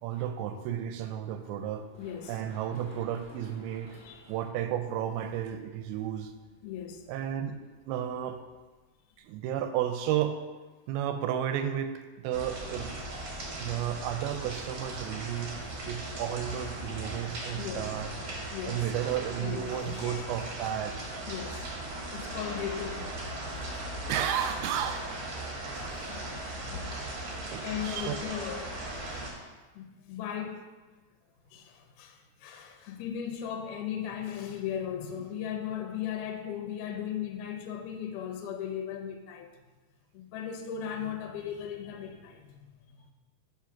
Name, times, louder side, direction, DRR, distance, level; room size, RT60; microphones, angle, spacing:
voice 1, 0.0-1.8 2.3-4.0 4.3-6.3 7.1-7.6 7.9-8.4 9.2-10.4 10.9-12.9 13.6-15.5 15.9-18.1 18.7-21.0 23.5-25.1 27.5-28.1, right 10 dB, 90° right, 8 dB, 2.5 m, -33 dB
Run, 1.7-9.2, left 1 dB, 45° left, 0.7 m, -57 dB
voice 2, 2.0-2.4 4.0-4.2 6.6-7.0 17.6-17.9 18.5-18.9 19.4-20.3 20.6-20.7 21.2-21.7 22.1-23.1 25.7-26.4 26.6-27.0 27.6-29.4 29.7-30.7 31.5-39.5 40.1-42.8, left 9 dB, 75° left, 3 dB, 2.0 m, -37 dB
sound 1, 12.3-29.3, right 2 dB, 60° right, 1.7 m, -38 dB
6.0 x 4.9 x 5.8 m, 1.3 s
omnidirectional pair, 4.4 m